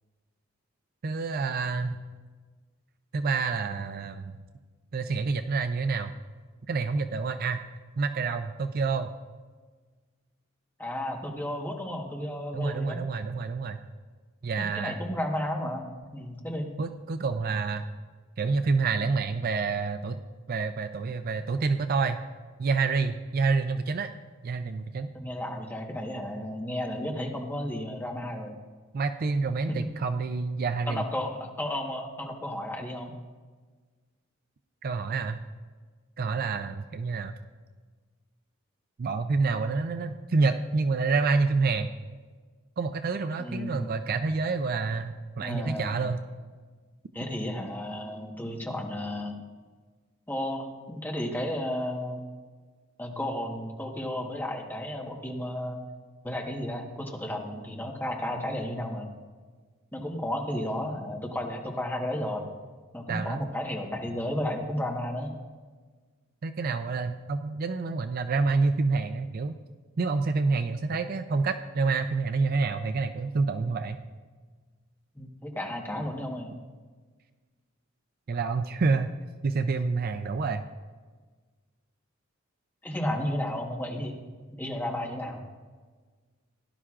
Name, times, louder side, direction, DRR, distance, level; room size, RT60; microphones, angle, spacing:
voice 1, 1.0-2.0 3.1-4.3 4.9-6.1 6.7-7.6 8.0-9.1 12.5-13.8 14.4-15.0 16.8-17.8 18.4-20.2 20.5-22.2 22.6-24.1 24.4-25.1 28.9-31.0 34.8-35.4 36.2-37.3 39.0-41.9 42.8-46.2 63.1-63.4 66.4-69.6 70.0-74.0 78.3-79.1 79.4-80.7, right 4 dB, 45° right, 9 dB, 0.4 m, -28 dB
voice 2, 10.8-13.1 14.6-16.7 25.1-28.5 29.7-29.8 30.9-33.2 43.4-43.9 45.4-46.0 47.1-49.4 50.3-52.3 53.0-55.8 56.2-59.1 59.9-62.5 62.9-65.3 75.2-76.5 82.8-84.2 84.5-85.4, left 1 dB, 10° left, 0 dB, 1.2 m, -33 dB
17.0 x 11.5 x 2.4 m, 1.4 s
head